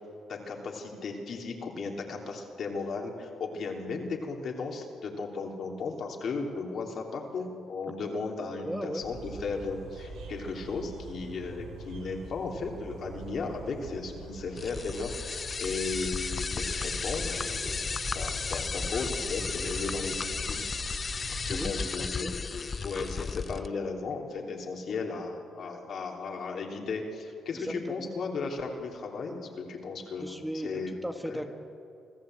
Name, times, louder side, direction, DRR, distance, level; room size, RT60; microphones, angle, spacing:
voice 1, 0.3-15.1 15.6-20.6 21.4-30.4 30.6-30.9 31.2-31.4, left 4 dB, 60° left, 1 dB, 3.3 m, -35 dB
voice 2, 8.6-9.0 21.5-22.3 27.5-28.1 30.2-31.5, equal, 5° right, 5 dB, 1.4 m, -37 dB
sound 1, 9.0-21.9, right 5 dB, 90° right, 2.9 m, -45 dB
sound 2, 14.6-23.7, left 4 dB, 35° left, 0.6 m, -34 dB
26.0 x 14.5 x 7.9 m, 2.7 s
cardioid pair, 90°, 0 cm